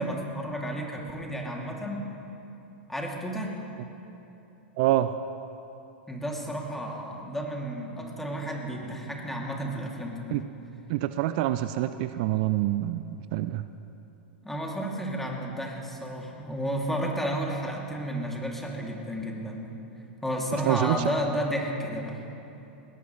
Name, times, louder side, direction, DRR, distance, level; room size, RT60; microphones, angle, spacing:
voice 1, 0.0-2.0 2.9-3.6 6.1-10.4 14.4-19.8 20.2-22.3, equal, 5° left, -1 dB, 2.7 m, -32 dB
voice 2, 4.8-5.1 10.3-10.4 10.9-13.0 13.3-13.6 20.7-21.0, right 15 dB, 55° right, 12 dB, 0.5 m, -26 dB
20.0 x 18.5 x 3.2 m, 2.9 s
hypercardioid pair, 100°, 6 cm